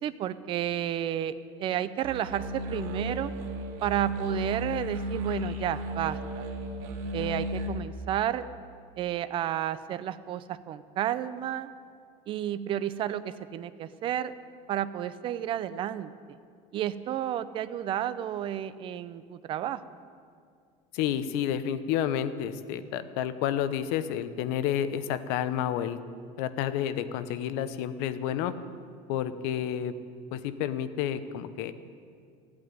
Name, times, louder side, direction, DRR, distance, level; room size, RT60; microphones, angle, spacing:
voice 1, 0.0-1.3 1.6-3.3 3.8-6.5 7.1-8.5 9.0-11.7 12.3-14.3 14.7-16.1 16.7-19.8, right 11 dB, 30° right, 13 dB, 0.5 m, -31 dB
sound 1, 2.0-7.7, equal, 70° right, 2.4 m, -34 dB
voice 2, 20.9-26.0 26.4-28.5 29.1-29.9 30.3-31.7, left 10 dB, 65° left, 12 dB, 0.9 m, -30 dB
14.5 x 8.6 x 9.6 m, 2.2 s
cardioid pair, 170°, 17 cm